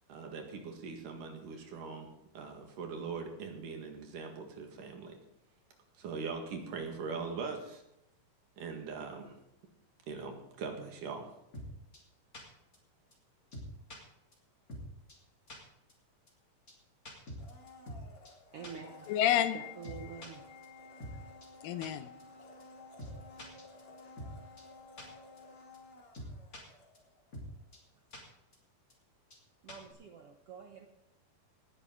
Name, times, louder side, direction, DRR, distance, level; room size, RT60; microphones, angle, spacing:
voice 1, 0.1-2.1 2.3-5.2 6.0-7.8 8.6-9.4 10.1-11.3, right 5 dB, 65° right, 3 dB, 3.3 m, -41 dB
sound 1, 11.5-11.7 11.9-12.0 12.3-12.4 12.7-12.8 13.1-13.2 13.5-14.0 14.3-14.4 14.7-14.8 15.1-15.2 15.5-15.6 15.9-16.0 16.3-16.4 16.7-16.8 17.1-18.0 18.3-18.4 18.6-18.7 19.0-19.1 19.4-19.5 19.8-20.3 20.6-20.7 21.0-21.1 21.4-21.5 21.8-21.9 22.2-22.3 22.6-22.7 23.0-23.1 23.4-24.3 24.6-24.7 25.0-25.1 25.4-25.5 25.7-25.8 26.1-26.6 26.9-27.0 27.3-27.5 27.7-27.8 28.1-28.2 28.5-28.6 28.9-29.0 29.3-29.4 29.7-29.9, equal, 25° left, 2.9 m, -45 dB
Domestic sounds home sounds, 17.4-27.3 27.6-27.7, left 3 dB, 40° left, 3.1 m, -54 dB
voice 2, 18.5-19.1 19.5-20.5 29.6-30.9, right 6 dB, 85° right, 3 dB, 1.3 m, -47 dB
voice 3, 19.1-19.7 20.0-20.2 20.5-21.2 21.6-22.1, left 11 dB, 80° left, 10 dB, 2.3 m, -32 dB
19.0 x 10.5 x 3.9 m, 0.81 s
omnidirectional pair, 4.2 m